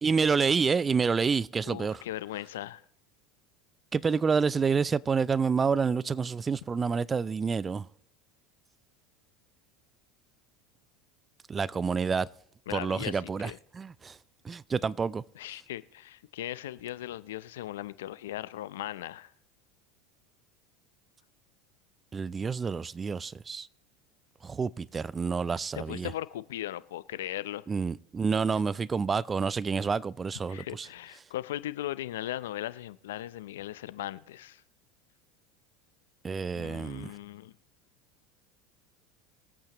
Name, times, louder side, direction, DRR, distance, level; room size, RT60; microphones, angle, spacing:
voice 1, 0.0-2.0 3.9-7.9 11.5-12.3 12.7-14.2 14.4-15.2 22.1-23.7 24.4-26.1 27.7-30.9 36.2-37.1, right 5 dB, 25° right, 0.4 m, -28 dB
voice 2, 1.7-2.8 12.7-13.6 15.4-19.3 25.7-27.6 30.5-34.6 36.5-37.5, left 13 dB, 85° left, 0.5 m, -38 dB
22.5 x 8.6 x 3.0 m
supercardioid pair, 100°, 0 cm